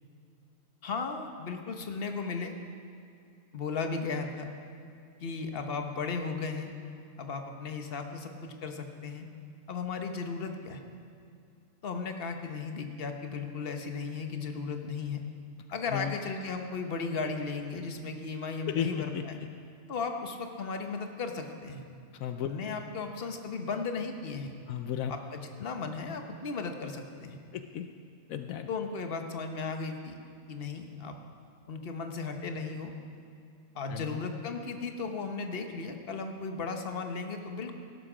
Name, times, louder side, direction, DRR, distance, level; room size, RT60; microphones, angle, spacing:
voice 1, 0.8-2.5 3.5-4.5 5.2-6.7 7.2-9.3 9.7-10.8 11.8-15.2 15.7-19.4 19.9-21.8 22.4-24.5 25.1-27.4 28.7-30.2 30.5-31.1 31.7-32.9 33.7-37.8, left 4 dB, 45° left, 5 dB, 1.2 m, -35 dB
voice 2, 18.7-19.2 22.1-22.5 24.7-25.1 27.5-27.9 28.3-28.7 33.9-34.2, left 10 dB, 80° left, 7 dB, 1.1 m, -34 dB
17.5 x 12.0 x 5.0 m, 2.4 s
omnidirectional pair, 1.4 m